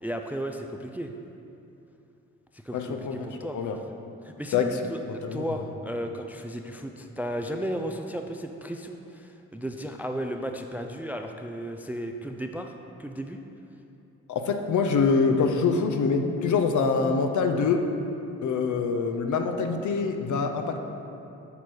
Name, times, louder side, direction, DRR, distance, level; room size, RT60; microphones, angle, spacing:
voice 1, 0.0-1.1 2.6-3.6 4.2-5.0 5.3-12.7 13.0-13.4 18.7-18.8, equal, 5° right, 4 dB, 0.4 m, -34 dB
voice 2, 2.7-3.8 4.5-4.8 5.2-5.5 14.3-17.8 18.4-20.8, left 5 dB, 55° left, 5 dB, 0.7 m, -25 dB
6.9 x 4.6 x 4.6 m, 2.8 s
hypercardioid pair, 45°, 36 cm